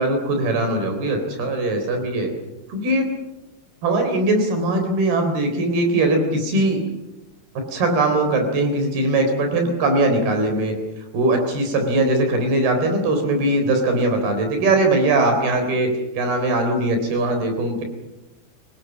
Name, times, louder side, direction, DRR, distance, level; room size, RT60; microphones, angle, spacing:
voice 1, 0.0-2.3 2.7-3.1 3.8-6.8 7.7-10.7 11.1-15.9 16.2-17.8, right 2 dB, 80° right, 5 dB, 5.8 m, -20 dB
27.0 x 19.5 x 7.3 m, 0.97 s
omnidirectional pair, 4.4 m